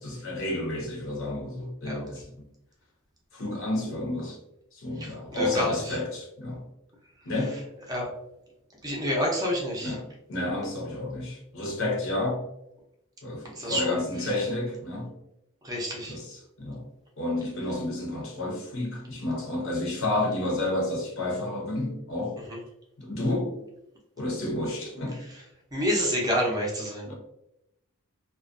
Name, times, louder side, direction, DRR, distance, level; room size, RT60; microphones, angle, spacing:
voice 1, 0.0-2.4 3.3-4.4 4.7-6.6 7.3-7.6 9.8-12.4 13.2-15.1 16.1-16.8 17.2-22.4 23.0-23.6 24.2-25.2 27.1-27.2, left 2 dB, 65° left, -2 dB, 0.8 m, -30 dB
voice 2, 5.0-6.0 7.9-8.1 8.8-10.0 13.6-14.0 15.6-16.2 22.5-22.6 25.7-27.1, equal, 15° right, -2 dB, 0.5 m, -28 dB
2.3 x 2.2 x 2.4 m, 0.84 s
head